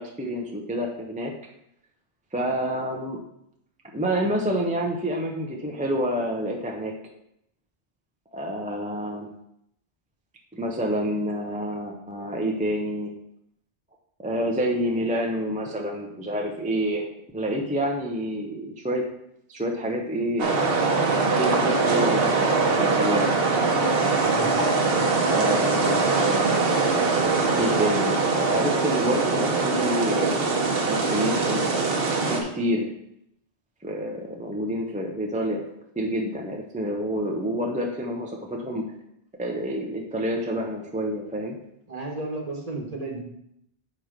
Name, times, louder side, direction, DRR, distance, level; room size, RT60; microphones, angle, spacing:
voice 1, 0.0-1.3 2.3-3.2 3.9-6.9 8.3-9.3 10.5-13.1 14.2-17.1 17.3-19.0 19.5-20.6 21.2-23.3 25.2-26.5 27.6-30.3 30.9-32.9 33.8-35.7 36.0-38.8 39.4-41.6, equal, 10° right, 1 dB, 0.6 m, -28 dB
sound 1, 20.4-32.4, right 4 dB, 70° right, 1.2 m, -22 dB
voice 2, 24.2-24.5 41.9-43.2, right 2 dB, 40° right, 0 dB, 1.3 m, -33 dB
8.7 x 3.2 x 5.1 m, 0.77 s
omnidirectional pair, 1.0 m